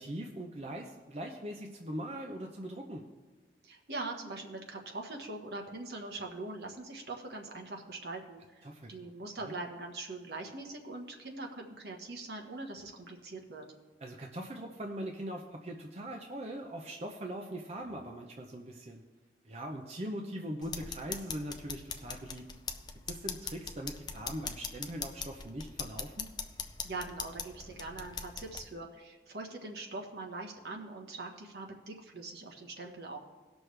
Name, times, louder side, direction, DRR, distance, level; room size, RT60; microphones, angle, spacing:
voice 1, 0.0-3.0 8.6-9.0 9.4-9.6 14.0-19.0 19.4-22.4 23.1-26.3, right 1 dB, 35° right, 1 dB, 0.7 m, -41 dB
voice 2, 3.6-13.6 26.8-33.2, right 2 dB, 65° right, 1 dB, 1.3 m, -42 dB
sound 1, 20.6-28.6, left 5 dB, 25° left, 0.5 m, -41 dB
18.5 x 6.2 x 3.3 m, 1.3 s
head